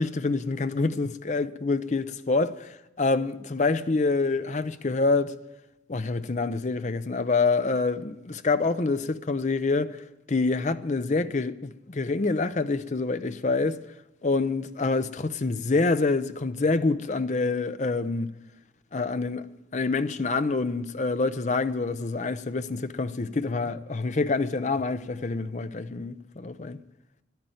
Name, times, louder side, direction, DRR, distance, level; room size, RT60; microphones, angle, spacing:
voice 1, 0.0-5.4 5.9-13.8 14.2-18.3 18.9-19.5 19.7-26.8, left 3 dB, 40° left, 0.6 m, -26 dB
12.0 x 10.5 x 9.1 m
head